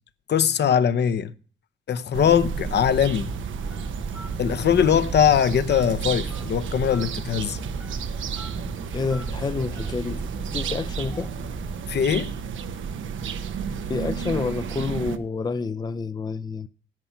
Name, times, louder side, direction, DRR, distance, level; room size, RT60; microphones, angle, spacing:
voice 1, 0.3-1.3 1.9-3.3 4.4-7.6 11.9-12.3, left 8 dB, 60° left, 0.8 m, -21 dB
sound 1, 2.1-15.2, right 6 dB, 90° right, 1.1 m, -32 dB
Telephone, 2.3-12.0, right 2 dB, 5° right, 0.8 m, -38 dB
voice 2, 8.9-10.2 10.5-11.3 13.9-16.7, left 4 dB, 20° left, 0.5 m, -28 dB
10.5 x 8.6 x 5.6 m
wide cardioid pair, 140°, 19 cm